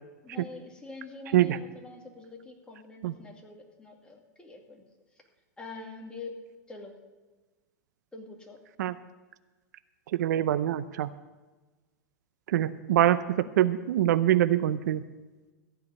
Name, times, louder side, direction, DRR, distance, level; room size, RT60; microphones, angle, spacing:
voice 1, 0.2-4.8 5.6-6.4 6.7-6.9 8.1-8.6, left 3 dB, 10° left, 1 dB, 2.4 m, -45 dB
voice 2, 10.1-11.1 12.5-15.0, right 12 dB, 75° right, 14 dB, 0.6 m, -24 dB
15.0 x 5.1 x 9.5 m, 1.3 s
hypercardioid pair, 125°, 9 cm